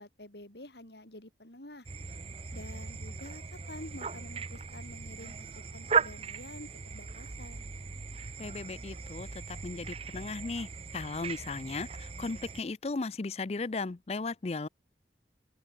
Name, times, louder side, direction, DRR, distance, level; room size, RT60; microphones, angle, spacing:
voice 1, 0.0-1.9 2.5-7.7, left 1 dB, 70° left, 5.0 m, -48 dB
sound 1, 1.9-12.6, right 5 dB, 35° right, 0.7 m, -37 dB
voice 2, 8.4-14.7, left 3 dB, 35° left, 0.5 m, -36 dB
open air
head